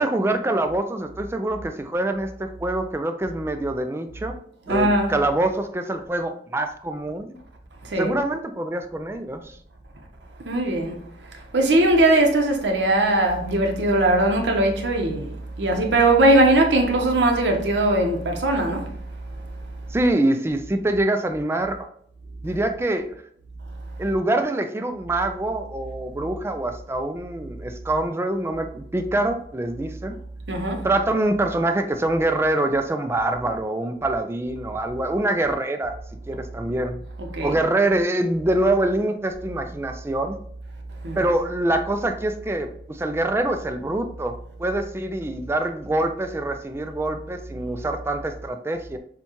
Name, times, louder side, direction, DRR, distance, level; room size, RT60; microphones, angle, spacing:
voice 1, 0.0-4.4 4.7-7.4 8.0-9.6 19.9-21.9 22.4-23.1 24.0-30.2 30.8-35.9 36.3-37.0 37.4-40.4 41.2-49.0, right 1 dB, 15° right, 0.3 m, -25 dB
voice 2, 4.7-5.1 7.8-8.1 10.4-19.0 19.3-19.5 30.5-30.8 37.2-37.6 41.0-41.3, right 1 dB, 75° right, 0.9 m, -20 dB
6.9 x 2.3 x 3.0 m
head